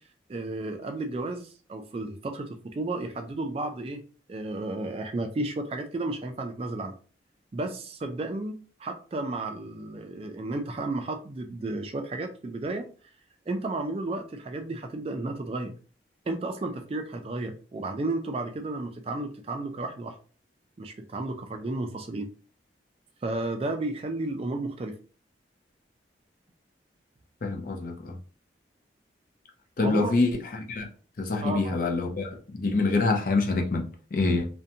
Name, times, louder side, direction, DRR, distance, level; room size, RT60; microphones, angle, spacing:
voice 1, 0.3-4.0 4.3-7.0 7.5-12.9 13.5-15.7 16.3-20.1 20.8-22.3 23.2-25.0 29.8-30.1 31.4-31.8, right 2 dB, 30° right, 0.3 m, -33 dB
voice 2, 27.4-28.2 29.8-30.9 31.2-34.5, left 3 dB, 45° left, 0.5 m, -26 dB
2.5 x 2.2 x 2.7 m
head